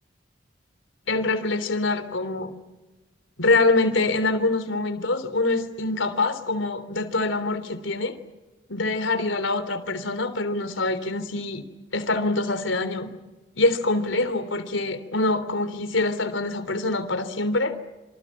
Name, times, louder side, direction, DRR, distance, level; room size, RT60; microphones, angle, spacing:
voice 1, 1.1-2.5 3.4-8.1 8.7-11.6 11.9-13.1 13.5-17.8, left 2 dB, 85° left, 11 dB, 3.4 m, -25 dB
28.0 x 26.5 x 7.4 m, 1.2 s
head